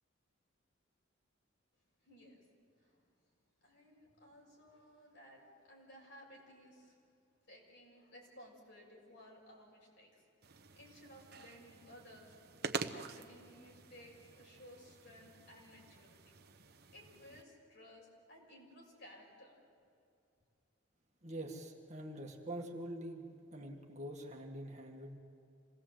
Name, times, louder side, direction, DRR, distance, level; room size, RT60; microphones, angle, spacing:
voice 1, 2.0-2.4 2.8-3.0 3.6-7.0 7.5-12.3 12.9-16.2 16.9-19.6, equal, 60° left, -1 dB, 6.7 m, -58 dB
sound 1, 10.4-17.4, right 5 dB, 50° right, 0.9 m, -47 dB
voice 2, 21.2-25.2, right 1 dB, 35° right, 1 dB, 1.9 m, -45 dB
27.0 x 19.5 x 7.9 m, 2.5 s
head